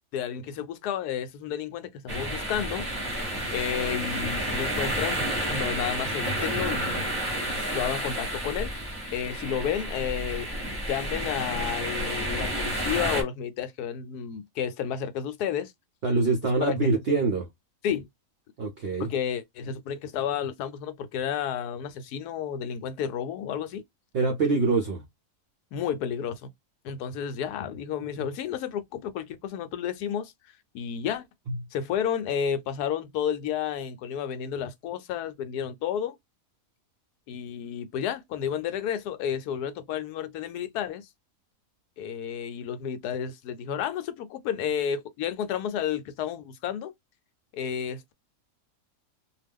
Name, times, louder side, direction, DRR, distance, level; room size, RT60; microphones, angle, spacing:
voice 1, 0.1-2.9 3.5-5.2 5.5-7.1 7.5-8.7 9.1-10.5 10.9-15.7 16.7-17.0 17.8-18.1 19.0-23.8 25.7-26.5 26.8-30.3 30.7-31.2 31.7-36.2 37.3-41.1 42.0-46.9 47.5-48.1, left 8 dB, 75° left, 1.1 m, -31 dB
sound 1, 2.1-13.2, right 1 dB, 20° right, 0.7 m, -30 dB
voice 2, 16.0-17.5 18.6-19.1 24.1-25.0, right 3 dB, 65° right, 0.6 m, -24 dB
2.5 x 2.3 x 3.4 m
omnidirectional pair, 1.8 m